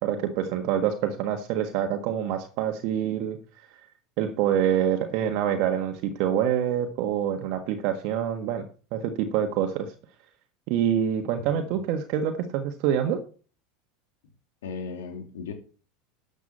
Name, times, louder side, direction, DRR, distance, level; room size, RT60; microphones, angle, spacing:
voice 1, 0.0-3.4 4.2-8.7 8.9-9.9 10.7-13.2, right 9 dB, 60° right, 5 dB, 1.5 m, -26 dB
voice 2, 14.6-15.5, left 5 dB, 75° left, 5 dB, 2.6 m, -36 dB
12.5 x 8.1 x 4.3 m, 0.38 s
hypercardioid pair, 85°, 0 cm